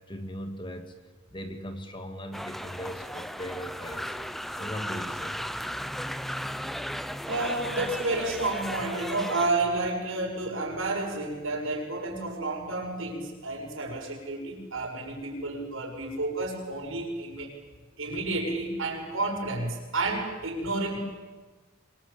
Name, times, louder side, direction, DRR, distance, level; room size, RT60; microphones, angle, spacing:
voice 1, 0.1-0.9 1.3-5.5, equal, 25° left, 6 dB, 2.2 m, -39 dB
sound 1, 2.3-9.5, equal, ahead, 0.8 m, -35 dB
voice 2, 7.3-17.5 18.0-21.0, right 2 dB, 70° right, 1 dB, 6.9 m, -30 dB
27.0 x 23.5 x 8.8 m, 1.3 s
head